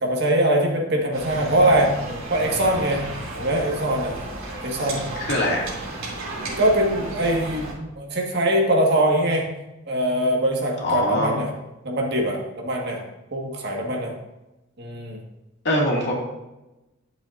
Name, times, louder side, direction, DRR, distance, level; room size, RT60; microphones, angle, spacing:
voice 1, 0.0-1.9 2.3-3.0 3.4-4.1 4.6-5.0 6.6-9.4 9.9-11.5 11.8-13.0 13.3-14.1 14.8-15.2, right 1 dB, 55° right, 0 dB, 1.6 m, -22 dB
sound 1, 1.1-7.7, right 2 dB, 85° right, 2.9 m, -33 dB
voice 2, 5.2-5.6 10.8-11.3 15.6-16.1, left 1 dB, 55° left, -3 dB, 2.3 m, -22 dB
11.5 x 7.2 x 2.6 m, 0.99 s
head